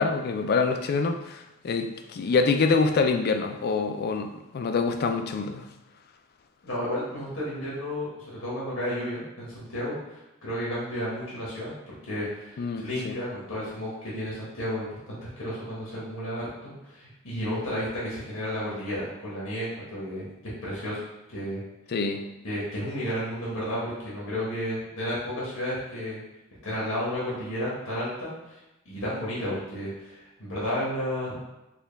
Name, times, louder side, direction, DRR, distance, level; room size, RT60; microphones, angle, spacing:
voice 1, 0.0-5.7 12.6-13.2 21.9-22.3, left 4 dB, 50° left, 6 dB, 0.4 m, -26 dB
voice 2, 6.6-11.7 12.0-20.2 20.6-21.0 21.3-21.6 22.4-26.2 26.6-28.6 28.8-31.4, equal, 75° left, -7 dB, 1.3 m, -32 dB
4.5 x 2.3 x 3.3 m, 0.98 s
head